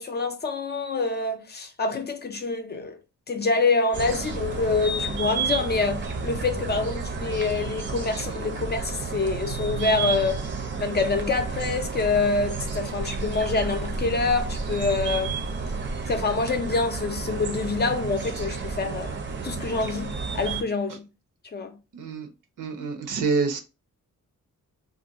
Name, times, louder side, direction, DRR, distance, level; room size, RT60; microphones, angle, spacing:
voice 1, 0.0-3.0 3.3-10.5 10.8-15.4 16.1-19.2 19.4-21.1 21.5-21.8, left 3 dB, 35° left, 0.4 m, -26 dB
sound 1, 3.9-20.6, right 4 dB, 35° right, 0.6 m, -31 dB
voice 2, 21.9-22.3 22.6-23.6, right 4 dB, 75° right, 0.8 m, -27 dB
2.5 x 2.2 x 3.8 m
wide cardioid pair, 140°, 32 cm